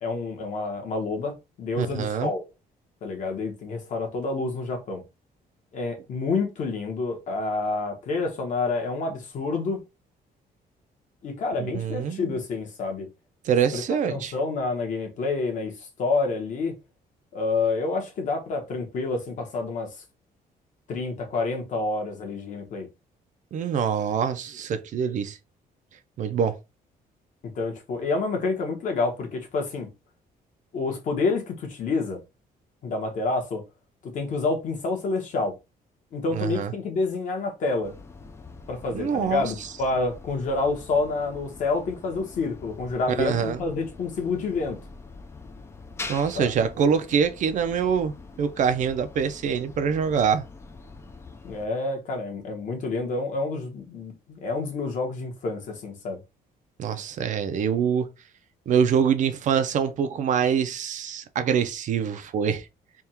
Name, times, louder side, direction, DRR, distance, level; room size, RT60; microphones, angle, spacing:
voice 1, 0.0-2.4 3.0-5.0 5.7-9.8 11.2-13.1 13.7-16.8 17.3-19.9 20.9-22.9 27.5-29.9 30.7-32.2 32.8-33.6 34.0-35.5 36.1-37.9 38.7-44.8 46.3-46.5 51.4-56.2, left 3 dB, 50° left, 1.2 m, -28 dB
voice 2, 1.8-2.3 11.6-12.4 13.4-14.3 23.5-25.4 26.2-26.5 36.3-36.7 38.9-39.5 43.2-43.6 46.1-50.4 56.8-58.1 58.7-62.7, right 7 dB, 50° right, 0.5 m, -25 dB
sound 1, 37.8-51.7, left 3 dB, 15° left, 0.4 m, -44 dB
3.5 x 2.3 x 4.3 m
cardioid pair, 170°, 16 cm